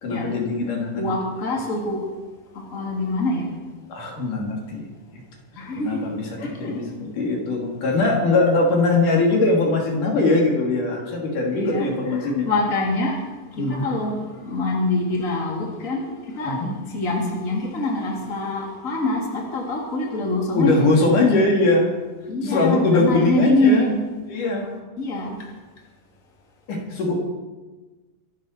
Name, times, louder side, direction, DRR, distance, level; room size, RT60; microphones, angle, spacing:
voice 1, 0.0-1.0 3.9-4.9 5.8-6.2 6.6-12.5 13.6-13.8 16.5-16.7 20.5-21.9 22.4-23.9 24.3-24.8 26.7-27.1, left 2 dB, 70° left, -1 dB, 4.4 m, -21 dB
voice 2, 1.0-2.0 2.5-3.5 5.6-6.0 6.4-6.8 11.5-13.2 13.6-16.6 16.9-20.9 22.3-24.1 25.0-25.4, left 2 dB, 25° left, -1 dB, 3.0 m, -25 dB
24.5 x 8.3 x 6.5 m, 1.2 s
omnidirectional pair, 3.8 m